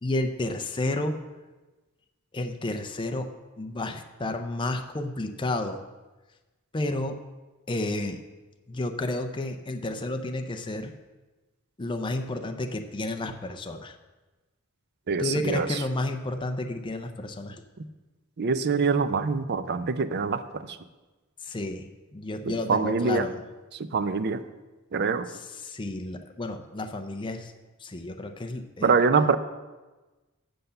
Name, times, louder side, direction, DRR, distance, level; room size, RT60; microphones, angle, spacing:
voice 1, 0.0-1.2 2.3-3.3 3.6-5.8 6.7-7.2 7.7-8.2 8.7-10.9 11.8-13.9 15.2-17.6 21.4-23.4 25.6-27.5 27.8-28.9, left 2 dB, 20° left, 5 dB, 0.5 m, -31 dB
voice 2, 15.1-15.8 17.8-17.9 18.4-20.8 22.5-23.3 23.7-24.4 24.9-25.3 28.8-29.4, right 5 dB, 50° right, 12 dB, 0.5 m, -25 dB
7.9 x 6.8 x 6.7 m, 1.2 s
head